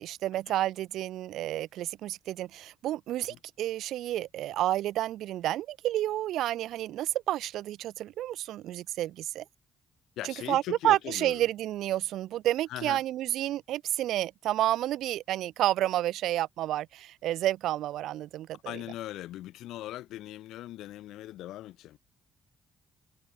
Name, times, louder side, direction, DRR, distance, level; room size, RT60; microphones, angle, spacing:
voice 1, 0.0-9.4 10.2-18.7, right 13 dB, 85° right, 0.8 m, -30 dB
voice 2, 10.2-11.5 12.7-13.0 18.6-22.0, left 14 dB, 85° left, 1.6 m, -39 dB
cardioid pair, 90°, 0 cm